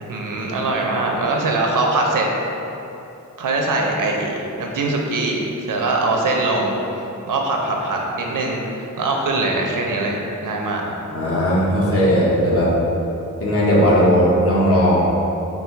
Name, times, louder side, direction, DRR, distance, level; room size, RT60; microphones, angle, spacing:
voice 1, 0.1-2.2 3.4-6.7 7.3-10.8, right 2 dB, 90° right, 0 dB, 0.6 m, -22 dB
voice 2, 11.1-12.7 13.4-15.0, equal, 45° left, -6 dB, 0.9 m, -17 dB
3.9 x 2.0 x 4.4 m, 2.9 s
wide cardioid pair, 110°, 31 cm